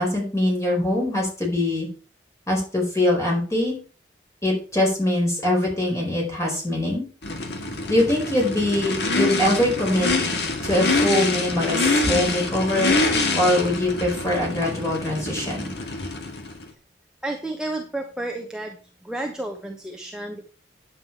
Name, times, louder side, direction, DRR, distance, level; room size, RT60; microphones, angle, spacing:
voice 1, 0.0-1.9 2.5-3.8 4.4-7.0 7.9-10.1 10.6-13.0 13.3-15.7, left 1 dB, 15° left, -2 dB, 4.6 m, -23 dB
Race car auto racing / Idling / Accelerating revving vroom, 7.2-16.6, left 3 dB, 65° left, 2.0 m, -25 dB
voice 2, 17.2-18.8 19.0-20.5, right 2 dB, 5° right, 1 dB, 1.0 m, -31 dB
9.8 x 7.4 x 4.7 m, 0.37 s
head